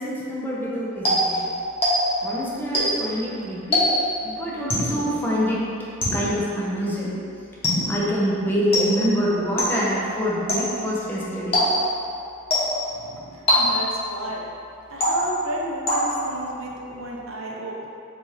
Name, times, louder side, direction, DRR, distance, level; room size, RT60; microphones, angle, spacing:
voice 1, 0.0-1.4 2.2-3.9 4.2-5.7 6.1-7.1 7.9-11.6, equal, 10° left, -6 dB, 0.5 m, -26 dB
sound 1, 1.0-2.3 2.7-3.2 3.7-4.2 4.7-5.1 6.0-6.5 7.6-8.1 8.7-9.2 9.6-10.0 10.5-10.9 11.5-12.0 12.5-12.9 13.5-14.0 15.0-15.5 15.9-16.4, equal, 30° left, 0.8 m, -23 dB
voice 2, 12.9-14.5 14.9-17.9, right 1 dB, 70° right, -2 dB, 0.5 m, -33 dB
4.0 x 2.4 x 3.1 m, 2.6 s
head